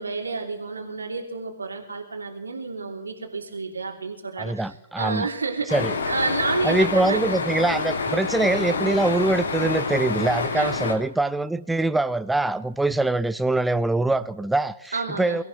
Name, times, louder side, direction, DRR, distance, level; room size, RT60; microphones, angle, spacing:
voice 1, 0.0-7.2 10.5-10.8 14.9-15.4, right 4 dB, 80° right, 3.0 m, -30 dB
voice 2, 4.4-5.3 5.7-5.9 6.6-15.4, right 2 dB, 5° right, 0.4 m, -23 dB
sound 1, 5.7-10.9, left 4 dB, 70° left, 2.4 m, -27 dB
24.0 x 14.0 x 3.1 m
figure-of-eight pair, 125°, 0 cm